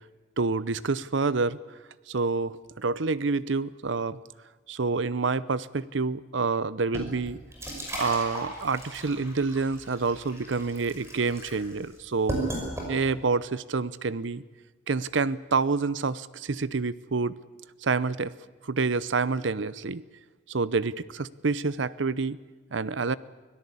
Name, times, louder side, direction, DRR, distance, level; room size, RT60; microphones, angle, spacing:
voice 1, 0.4-1.6 2.1-4.2 4.7-7.4 8.0-12.4 12.9-14.4 14.9-17.3 17.8-18.3 18.6-20.0 20.5-22.4 22.7-23.2, right 4 dB, 70° right, 18 dB, 0.7 m, -28 dB
sound 1, 6.9-13.3, right 1 dB, 15° right, 5.9 m, -36 dB
24.5 x 17.0 x 8.4 m, 1.4 s
head